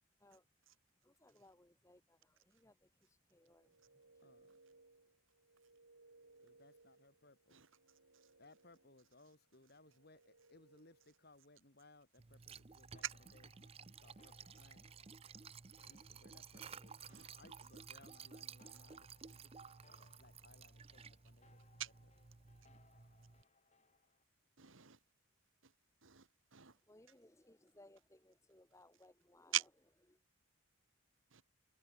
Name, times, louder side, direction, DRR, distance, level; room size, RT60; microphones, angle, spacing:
voice 1, 1.0-4.5 26.6-29.5 30.1-30.2, left 1 dB, 15° left, 1.4 m, -66 dB
sound 1, 3.4-11.3, right 3 dB, 85° right, 3.1 m, -68 dB
voice 2, 4.2-4.6 6.4-7.6 8.4-13.0 13.3-14.9 15.8-17.0 17.4-21.6, left 2 dB, 45° left, 2.6 m, -66 dB
Liquid, 12.2-23.4, right 6 dB, 25° right, 0.5 m, -55 dB
sound 2, 12.9-24.2, left 4 dB, 30° left, 5.3 m, -72 dB
voice 3, 24.6-25.0 25.6-25.7 26.0-26.8 29.5-29.6 31.3-31.4, right 12 dB, 65° right, 1.7 m, -42 dB
head